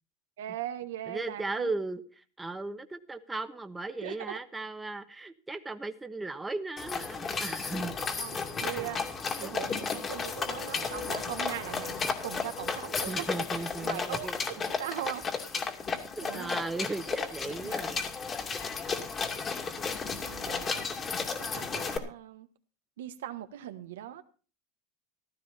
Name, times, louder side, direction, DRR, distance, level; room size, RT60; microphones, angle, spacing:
voice 1, 0.4-1.7 4.0-4.4 8.1-13.3 13.8-15.3 16.2-16.6 17.6-17.8 20.2-20.9 21.3-22.5 23.0-24.2, right 13 dB, 90° right, 1.4 m, -40 dB
voice 2, 1.1-8.0 8.6-9.0 9.3-9.6 10.0-10.1 13.1-14.4 16.1-18.4, right 3 dB, 10° right, 1.2 m, -37 dB
sound 1, 6.8-22.0, left 5 dB, 25° left, 2.4 m, -34 dB
15.0 x 12.5 x 4.3 m
supercardioid pair, 120°, 0 cm